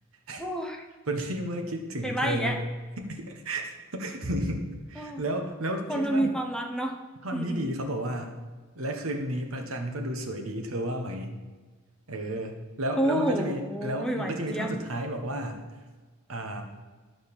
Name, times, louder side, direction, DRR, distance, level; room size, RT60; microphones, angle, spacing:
voice 1, 0.4-0.8 2.0-2.5 5.0-5.2 5.9-7.0 7.3-7.7 13.0-14.7, right 1 dB, 5° left, 2 dB, 0.7 m, -29 dB
voice 2, 1.1-2.6 3.0-6.3 7.2-8.4 8.7-11.3 12.1-15.6 16.3-16.6, right 1 dB, 75° right, 4 dB, 1.2 m, -32 dB
11.5 x 3.9 x 6.8 m, 1.4 s
head